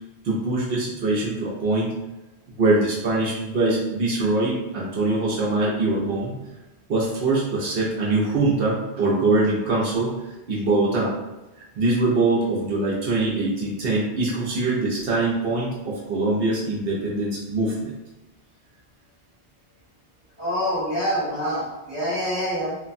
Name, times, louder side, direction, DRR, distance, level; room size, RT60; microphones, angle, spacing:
voice 1, 0.2-2.0 2.6-6.3 6.9-10.1 10.5-11.1 11.8-17.9, right 2 dB, 65° right, -4 dB, 0.8 m, -23 dB
voice 2, 20.4-22.8, equal, 25° left, -10 dB, 1.1 m, -26 dB
3.0 x 2.0 x 2.5 m, 1.0 s
omnidirectional pair, 1.1 m